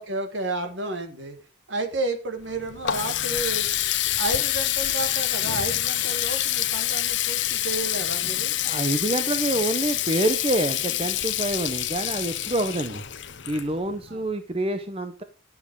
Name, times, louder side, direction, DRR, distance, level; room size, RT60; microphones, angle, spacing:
voice 1, 0.0-1.4 1.7-3.7 4.2-8.6 14.1-14.2, right 2 dB, 65° right, 5 dB, 2.0 m, -31 dB
Water tap faucet, 2.4-14.1, left 12 dB, 60° left, 0.8 m, -27 dB
voice 2, 8.6-13.0 13.5-15.2, right 1 dB, 30° right, 8 dB, 0.7 m, -27 dB
11.0 x 7.4 x 4.6 m, 0.32 s
head